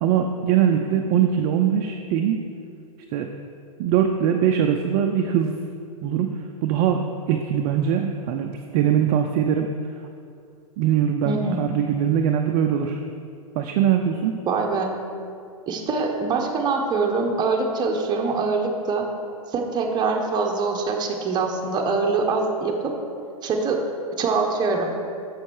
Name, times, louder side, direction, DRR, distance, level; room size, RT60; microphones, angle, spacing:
voice 1, 0.0-2.4 3.1-3.3 3.8-5.6 6.0-6.3 6.6-9.7 10.8-13.0 13.6-14.4, right 9 dB, 40° right, 4 dB, 0.5 m, -22 dB
voice 2, 11.2-11.7 14.5-14.9 15.7-19.1 19.5-22.9 23.4-23.8 24.2-24.9, right 4 dB, 20° right, 1 dB, 0.9 m, -24 dB
6.3 x 6.3 x 4.7 m, 2.5 s
hypercardioid pair, 120°, 19 cm